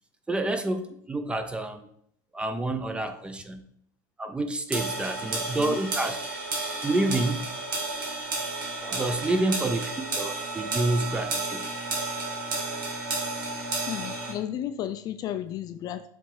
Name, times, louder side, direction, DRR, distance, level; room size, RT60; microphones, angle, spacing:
voice 1, 0.3-1.9 2.3-3.6 4.2-6.2 6.7-7.5 8.9-11.7, right 2 dB, 10° right, 9 dB, 0.6 m, -28 dB
sound 1, 4.7-14.3, right 3 dB, 85° right, 2.5 m, -32 dB
sound 2, 8.8-9.5, right 3 dB, 40° right, 2.9 m, -45 dB
voice 2, 13.9-16.0, left 11 dB, 35° left, 11 dB, 0.4 m, -33 dB
7.1 x 3.4 x 4.8 m, 0.67 s
supercardioid pair, 125°, 11 cm